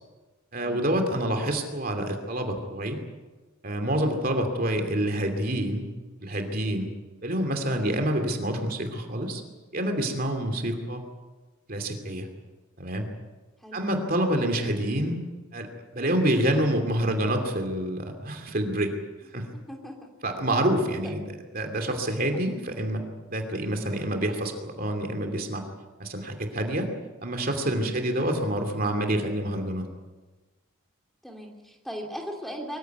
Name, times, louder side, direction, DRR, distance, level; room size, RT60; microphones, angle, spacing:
voice 1, 0.5-3.0 3.6-5.9 6.2-6.9 7.2-9.4 9.7-11.0 11.7-12.3 12.8-13.1 13.7-15.2 15.5-15.7 15.9-18.9 19.3-19.5 20.2-21.2 21.5-23.0 23.3-25.6 26.0-26.9 27.2-29.9, right 1 dB, 40° right, 4 dB, 2.7 m, -27 dB
voice 2, 7.7-8.0 13.6-13.8 19.7-20.1 27.8-28.1 31.2-32.8, equal, ahead, 1 dB, 2.8 m, -38 dB
24.0 x 15.5 x 9.3 m, 1.2 s
head